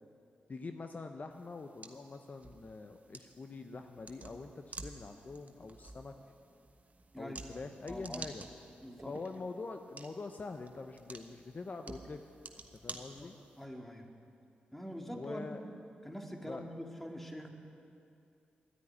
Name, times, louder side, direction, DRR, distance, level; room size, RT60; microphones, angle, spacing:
voice 1, 0.5-6.1 7.2-8.5 9.1-12.2 12.8-13.3 15.1-15.6 16.5-16.6, left 3 dB, 45° left, 6 dB, 0.7 m, -44 dB
sound 1, 1.3-13.6, right 3 dB, 40° right, 1.2 m, -51 dB
voice 2, 7.1-7.6 7.9-8.3 8.8-9.1 13.1-13.3 13.6-14.1 14.7-15.6 16.0-17.5, equal, 5° left, 2 dB, 2.0 m, -44 dB
11.5 x 9.8 x 9.7 m, 2.5 s
supercardioid pair, 45°, 4 cm